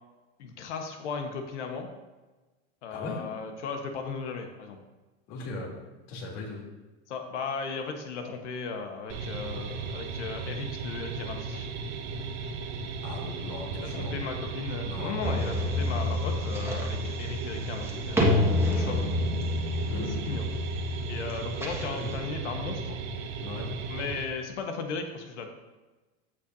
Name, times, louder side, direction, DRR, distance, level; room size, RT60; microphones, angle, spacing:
voice 1, 0.4-1.9 2.8-4.8 7.1-11.7 13.7-18.4 18.7-19.1 20.2-20.5 21.1-23.0 23.9-25.5, left 5 dB, 85° left, 4 dB, 1.3 m, -36 dB
voice 2, 2.9-3.2 5.3-5.7 6.1-6.6 13.0-14.2 14.8-15.2 19.9-20.4 21.9-22.2 23.4-23.7, left 2 dB, 60° left, -2 dB, 3.1 m, -38 dB
sound 1, 9.1-24.2, right 4 dB, 50° right, 1.3 m, -36 dB
sound 2, 15.2-22.2, left 2 dB, 5° right, 1.6 m, -29 dB
15.5 x 5.8 x 2.7 m, 1.2 s
supercardioid pair, 125°, 34 cm